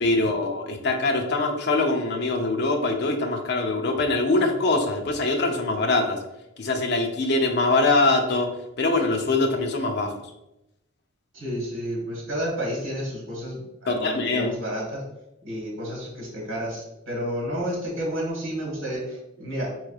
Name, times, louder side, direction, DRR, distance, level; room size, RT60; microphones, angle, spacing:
voice 1, 0.0-6.2 6.6-8.5 8.8-10.1 13.9-14.5, left 2 dB, 55° left, 3 dB, 0.6 m, -23 dB
voice 2, 11.3-15.0 15.4-19.9, equal, 65° right, -3 dB, 1.4 m, -31 dB
4.6 x 3.1 x 2.3 m, 0.89 s
head